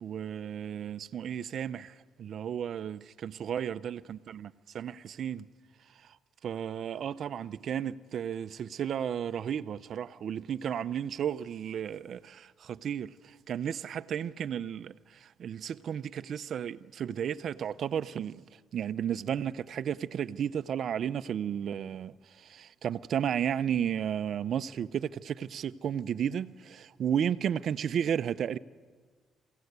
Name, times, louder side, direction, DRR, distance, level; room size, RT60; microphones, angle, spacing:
voice 1, 0.0-4.5 4.7-5.5 6.4-13.1 13.5-14.9 15.4-18.4 18.7-22.1 22.5-28.6, right 9 dB, 60° right, 0.6 m, -33 dB
27.5 x 16.5 x 8.2 m
cardioid pair, 85°, 0 cm